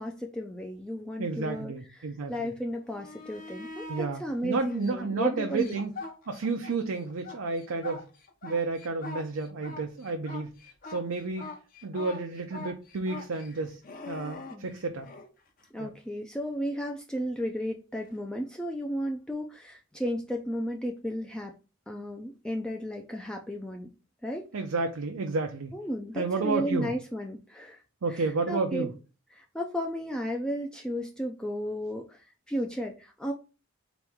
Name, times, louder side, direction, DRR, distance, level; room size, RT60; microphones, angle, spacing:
voice 1, 0.0-5.8 14.5-14.7 15.7-21.5 21.9-23.9 24.2-24.4 25.7-27.8 28.1-28.9 29.3-33.3, equal, 5° left, 0.3 m, -34 dB
voice 2, 1.2-2.5 3.9-5.9 6.3-8.1 8.4-10.5 10.8-11.5 11.8-15.1 15.8-15.9 24.5-25.8 26.1-26.9 28.0-28.9, right 3 dB, 85° right, 0.6 m, -31 dB
sound 1, 2.8-4.1 4.7-6.8 7.1-15.3 18.0-18.2, left 3 dB, 40° left, 0.7 m, -43 dB
4.1 x 3.0 x 3.5 m
head